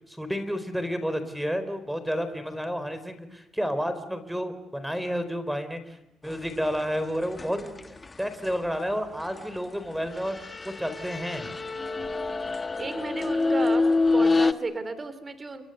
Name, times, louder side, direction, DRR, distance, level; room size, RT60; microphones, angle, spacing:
voice 1, 0.1-6.0 6.2-7.6 8.2-10.4 10.6-11.5, equal, ahead, 11 dB, 4.5 m, -30 dB
sound 1, 7.4-8.1 10.1-14.5, left 3 dB, 25° left, 1.5 m, -26 dB
voice 2, 7.4-7.9 12.8-13.8 14.1-15.6, right 3 dB, 30° right, 12 dB, 3.4 m, -34 dB
30.0 x 23.0 x 8.2 m, 0.90 s
cardioid pair, 90°, 0 cm